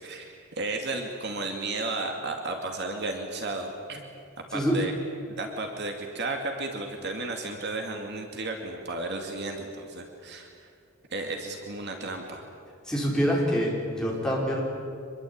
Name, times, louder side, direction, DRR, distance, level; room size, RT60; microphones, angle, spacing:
voice 1, 0.0-4.0 4.5-4.9 5.4-10.5 11.1-12.4, right 2 dB, 50° right, 3 dB, 2.5 m, -33 dB
voice 2, 12.9-14.6, equal, 5° left, -4 dB, 5.6 m, -26 dB
25.5 x 22.0 x 8.9 m, 2.4 s
head